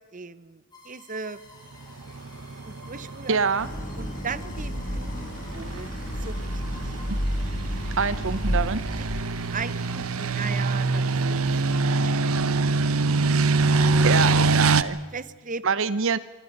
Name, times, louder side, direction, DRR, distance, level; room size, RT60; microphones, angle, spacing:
voice 1, 0.1-1.4 2.6-3.4 4.0-5.9 6.2-7.0 9.5-11.8 14.2-14.4 15.1-15.6, right 4 dB, 40° right, 16 dB, 1.0 m, -38 dB
sound 1, 0.7-12.5, left 2 dB, 20° left, 6.0 m, -51 dB
sound 2, 1.9-14.8, right 3 dB, 85° right, 1.0 m, -25 dB
voice 2, 3.3-3.7 8.0-8.8 14.0-15.0 15.6-16.2, right 5 dB, 65° right, 16 dB, 0.7 m, -24 dB
Idling, 3.6-9.7, equal, 40° left, 4.1 m, -31 dB
27.5 x 23.5 x 5.5 m, 1.3 s
head